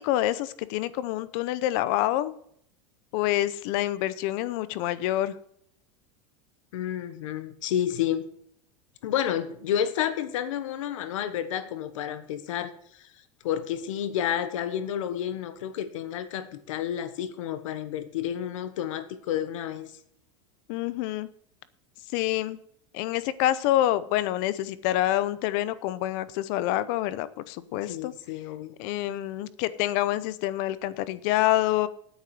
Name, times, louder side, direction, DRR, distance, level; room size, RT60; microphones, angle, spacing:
voice 1, 0.0-2.3 3.1-5.4 20.7-21.3 22.1-22.6 22.9-28.1 28.8-31.9, left 14 dB, 40° left, 16 dB, 0.7 m, -27 dB
voice 2, 6.7-8.3 9.0-13.0 13.4-19.9 27.9-28.7, left 10 dB, 80° left, 12 dB, 1.4 m, -30 dB
9.7 x 9.0 x 7.6 m, 0.67 s
supercardioid pair, 175°, 16 cm